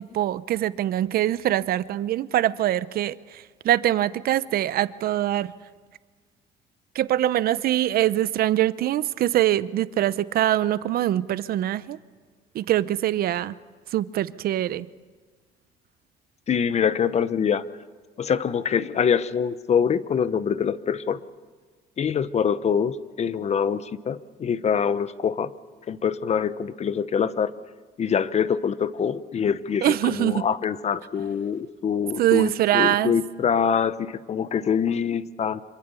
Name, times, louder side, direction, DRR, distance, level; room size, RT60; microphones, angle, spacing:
voice 1, 0.0-5.5 6.9-12.0 12.5-13.6 13.9-14.9 29.8-30.5 32.2-33.1, right 13 dB, 65° right, 0.7 m, -23 dB
voice 2, 16.5-17.7 18.2-21.2 22.0-25.5 25.9-27.5 28.0-35.6, left 7 dB, 40° left, 1.0 m, -24 dB
26.0 x 23.0 x 7.0 m
cardioid pair, 110°, 17 cm